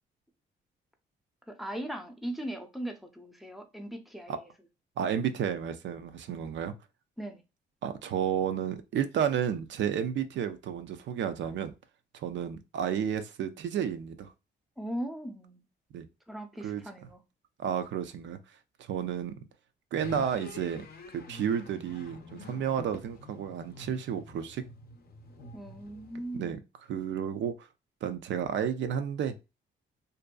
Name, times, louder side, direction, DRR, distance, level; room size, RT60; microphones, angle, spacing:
voice 1, 1.5-4.4 7.2-7.4 14.8-15.6 16.3-17.2 25.5-26.6, right 1 dB, ahead, 0.6 m, -39 dB
voice 2, 5.0-6.7 7.8-11.7 12.1-14.3 15.9-16.1 16.6-16.8 17.6-18.4 18.9-19.4 19.9-20.9 21.1-24.6 26.3-26.6 26.9-27.7 28.0-29.3, right 8 dB, 65° right, 0.4 m, -31 dB
sound 1, 20.0-26.4, left 2 dB, 50° left, 0.5 m, -47 dB
2.6 x 2.2 x 2.2 m
cardioid pair, 65°, 20 cm